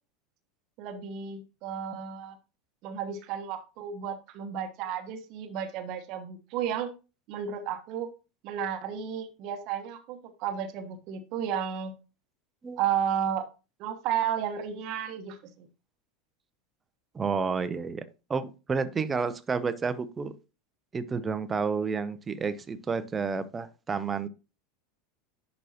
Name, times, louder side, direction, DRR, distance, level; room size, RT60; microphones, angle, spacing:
voice 1, 0.8-2.4 2.8-6.9 7.3-8.1 8.4-11.9 12.8-13.4 13.8-15.7, right 8 dB, 50° right, 8 dB, 1.0 m, -33 dB
voice 2, 17.1-18.0 18.3-20.3 20.9-24.3, right 5 dB, 20° right, 13 dB, 0.7 m, -30 dB
11.0 x 4.1 x 2.8 m, 0.31 s
figure-of-eight pair, 80°, 0 cm